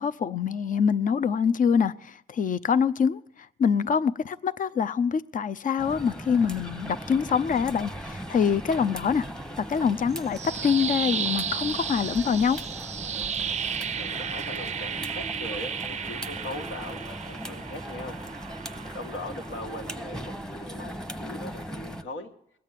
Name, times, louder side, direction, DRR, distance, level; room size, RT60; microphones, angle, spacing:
voice 1, 0.0-3.2 3.6-9.2 9.6-12.6, left 6 dB, 40° left, 0.6 m, -25 dB
sound 1, 5.8-22.0, equal, 5° left, 1.1 m, -38 dB
sound 2, 10.1-20.2, right 7 dB, 35° right, 0.5 m, -34 dB
voice 2, 13.9-18.2 18.6-22.3, left 2 dB, 75° left, 1.8 m, -40 dB
20.5 x 8.5 x 7.5 m
cardioid pair, 90°, 20 cm